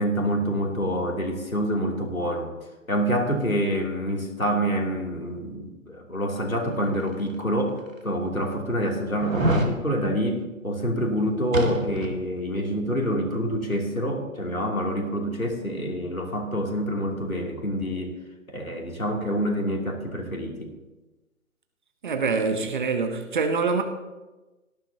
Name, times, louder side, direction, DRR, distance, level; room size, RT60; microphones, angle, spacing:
voice 1, 0.0-2.5 2.9-18.1 18.5-20.7, equal, 80° left, 3.0 m, -27 dB
sound 1, 7.2-7.3 8.0-8.1 9.2-9.7 11.5-12.2 12.5-12.6, right 1 dB, 70° right, 2.2 m, -25 dB
voice 2, 22.0-23.8, right 4 dB, 35° right, 1.2 m, -25 dB
17.5 x 13.0 x 2.9 m
figure-of-eight pair, 140°, 41 cm